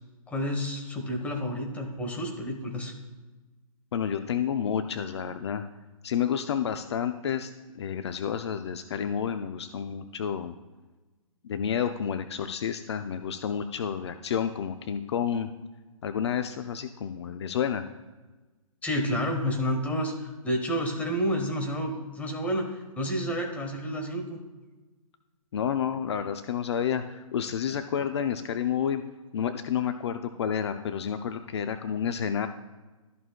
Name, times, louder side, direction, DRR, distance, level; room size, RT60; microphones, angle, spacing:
voice 1, 0.3-2.9 18.8-24.4, equal, 10° left, 2 dB, 1.2 m, -30 dB
voice 2, 3.9-5.6 6.0-7.5 7.8-10.5 11.4-15.5 16.0-17.8 25.5-29.0 29.3-32.5, left 8 dB, 50° left, 9 dB, 0.5 m, -30 dB
13.5 x 6.2 x 2.3 m, 1.2 s
figure-of-eight pair, 135°, 18 cm